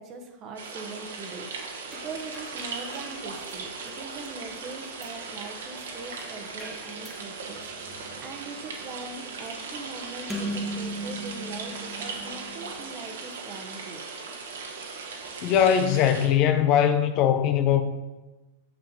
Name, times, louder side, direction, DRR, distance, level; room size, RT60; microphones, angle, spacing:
voice 1, 0.0-1.8 2.0-14.0, right 3 dB, 35° right, 1.3 m, -41 dB
sound 1, 0.5-16.3, right 4 dB, 65° right, 1.7 m, -38 dB
sound 2, 1.9-12.8, equal, ahead, 1.7 m, -40 dB
voice 2, 15.4-17.8, left 9 dB, 40° left, 0.7 m, -21 dB
7.7 x 7.1 x 4.5 m
figure-of-eight pair, 95°, 0 cm